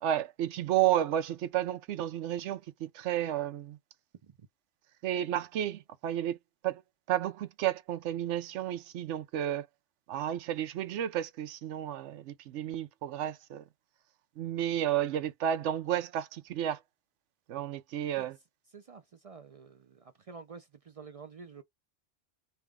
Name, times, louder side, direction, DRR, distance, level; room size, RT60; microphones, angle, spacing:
voice 1, 0.0-3.8 5.0-6.4 6.6-6.8 7.1-9.7 10.1-13.6 14.4-16.8 17.5-18.4, right 11 dB, 90° right, 0.9 m, -32 dB
voice 2, 18.7-21.6, right 5 dB, 60° right, 0.4 m, -49 dB
3.4 x 2.4 x 3.5 m
omnidirectional pair, 1.2 m